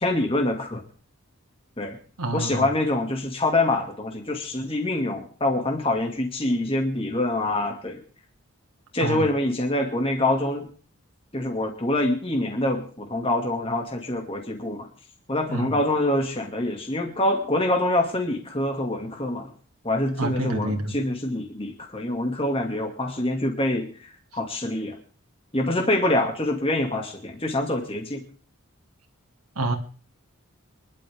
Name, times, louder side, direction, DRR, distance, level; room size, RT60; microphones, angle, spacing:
voice 1, 0.0-0.8 1.8-2.0 2.3-8.0 8.9-10.7 11.3-14.9 15.3-19.5 19.8-25.0 25.5-28.2, left 1 dB, 25° left, 2 dB, 2.2 m, -25 dB
voice 2, 2.2-2.7 9.0-9.3 15.5-15.8 20.2-21.0 29.6-29.7, right 2 dB, 85° right, 2 dB, 2.5 m, -27 dB
25.0 x 12.0 x 3.6 m, 0.41 s
head